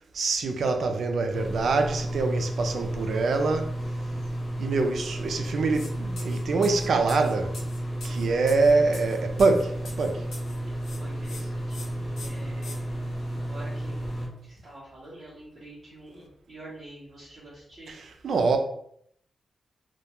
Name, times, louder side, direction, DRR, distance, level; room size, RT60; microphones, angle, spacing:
voice 1, 0.1-3.7 4.6-7.5 8.0-10.3 17.9-18.6, right 3 dB, 65° right, 0.3 m, -25 dB
sound 1, 1.3-14.3, right 1 dB, 25° left, 0.6 m, -32 dB
sound 2, 5.7-5.9 6.2-10.6 10.8-11.4 11.7-11.9 12.2-12.8, left 3 dB, 75° left, 0.6 m, -43 dB
voice 2, 10.9-11.8 12.2-12.9 13.4-14.1 14.4-17.9, right 1 dB, 30° right, 0.8 m, -46 dB
2.2 x 2.2 x 2.8 m
wide cardioid pair, 165°, 0 cm